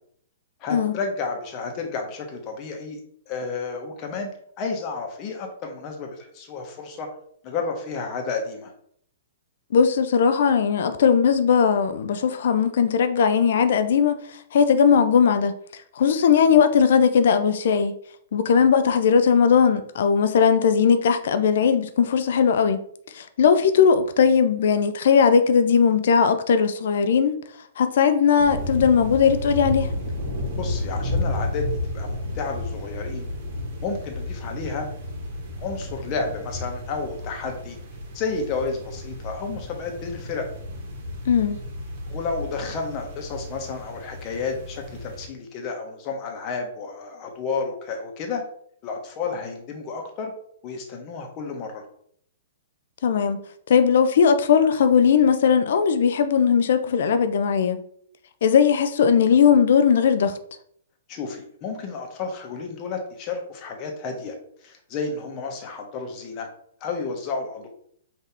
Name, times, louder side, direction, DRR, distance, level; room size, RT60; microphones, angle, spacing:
voice 1, 0.6-3.0 3.3-4.3 4.6-7.1 7.4-8.7 30.6-33.3 33.8-34.9 35.6-37.8 38.1-40.4 42.1-48.4 48.8-50.3 50.6-51.9 61.1-64.3 64.6-66.5 66.8-67.7, left 4 dB, 35° left, 1.2 m, -31 dB
voice 2, 9.7-14.2 14.5-15.5 16.0-17.9 18.3-22.8 23.1-27.4 27.8-29.9 41.3-41.6 53.0-53.4 53.7-57.8 58.4-60.4, left 6 dB, 60° left, 0.5 m, -18 dB
sound 1, 28.4-45.3, left 1 dB, 45° right, 1.3 m, -32 dB
5.5 x 2.8 x 3.4 m
figure-of-eight pair, 115°, 0 cm